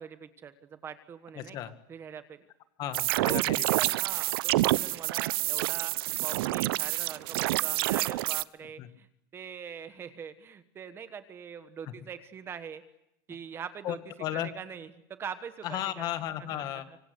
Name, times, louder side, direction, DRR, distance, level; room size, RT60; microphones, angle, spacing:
voice 1, 0.0-1.6 1.9-2.4 3.2-3.4 3.7-9.1 9.3-12.8 13.3-14.0 14.3-16.0 16.5-17.0, right 7 dB, 20° right, 12 dB, 1.3 m, -43 dB
voice 2, 1.4-1.7 2.8-3.7 8.8-8.9 11.9-12.0 13.8-14.5 15.6-16.9, left 12 dB, 35° left, 11 dB, 1.9 m, -34 dB
sound 1, 2.9-8.4, right 18 dB, 85° right, 0.9 m, -28 dB
25.5 x 25.5 x 8.1 m, 0.84 s
cardioid pair, 180°, 12 cm